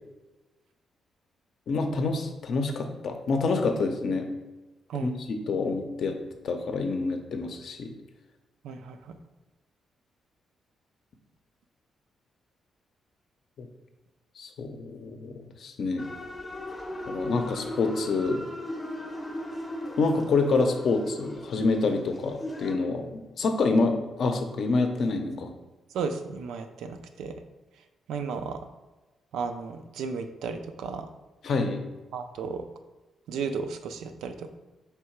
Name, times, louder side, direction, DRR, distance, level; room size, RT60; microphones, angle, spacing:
voice 1, 1.7-4.3 5.0-6.2 6.4-7.9 13.6-13.7 14.4-16.1 17.1-18.4 20.0-25.5 31.4-31.8, left 3 dB, 60° left, 5 dB, 0.5 m, -27 dB
voice 2, 8.6-9.1 25.9-27.3 28.1-28.6 29.3-31.1 32.1-32.6 33.3-34.5, right 5 dB, 85° right, 8 dB, 0.3 m, -34 dB
sound 1, 16.0-22.8, left 1 dB, 20° left, 0.6 m, -38 dB
3.3 x 2.8 x 4.5 m, 1.1 s
cardioid pair, 100°, 0 cm